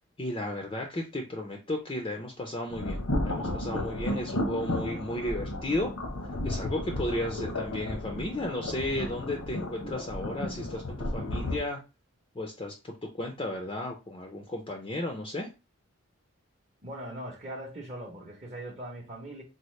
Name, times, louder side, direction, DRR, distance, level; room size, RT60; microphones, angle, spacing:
voice 1, 0.2-5.9 6.4-11.8 12.4-12.7 13.2-15.5, left 1 dB, 25° left, 0.4 m, -34 dB
sound 1, 2.7-11.6, left 1 dB, 85° left, 0.9 m, -33 dB
voice 2, 16.8-19.4, right 1 dB, 30° right, 0.7 m, -40 dB
4.0 x 2.0 x 3.1 m
head